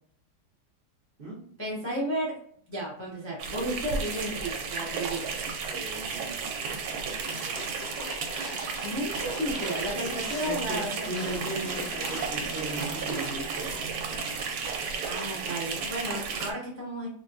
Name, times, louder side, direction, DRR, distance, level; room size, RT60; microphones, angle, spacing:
voice 1, 1.6-2.3 2.7-5.4 8.8-11.1 15.0-17.1, right 1 dB, 15° left, -5 dB, 0.6 m, -33 dB
sound 1, 3.4-16.5, right 5 dB, 70° right, 1.1 m, -33 dB
voice 2, 5.6-8.6 9.9-10.1 10.4-14.3, right 2 dB, 45° right, -6 dB, 0.8 m, -39 dB
sound 2, 7.3-13.9 14.2-14.3, left 2 dB, 65° left, 0.6 m, -43 dB
Aircraft, 8.2-14.8, right 1 dB, 25° right, 1.2 m, -47 dB
3.5 x 2.2 x 2.5 m, 0.62 s
omnidirectional pair, 1.8 m